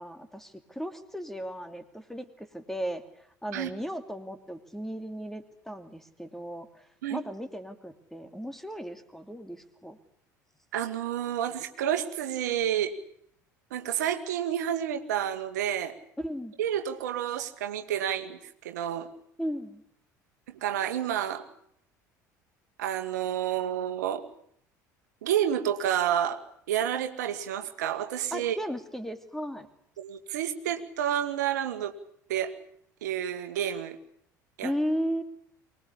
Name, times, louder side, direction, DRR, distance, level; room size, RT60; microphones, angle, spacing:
voice 1, 0.0-3.0 3.4-6.7 7.1-10.0 16.2-16.5 19.4-19.8 28.3-29.7 34.6-35.2, equal, 5° left, 8 dB, 2.7 m, -35 dB
voice 2, 10.7-12.9 13.7-15.9 16.6-19.1 20.5-21.4 22.8-24.3 25.2-26.4 26.7-28.5 30.0-31.9 32.3-32.5 33.0-34.0 34.6-34.7, right 10 dB, 70° right, 8 dB, 1.7 m, -29 dB
24.0 x 20.0 x 8.5 m, 0.69 s
figure-of-eight pair, 65°, 10 cm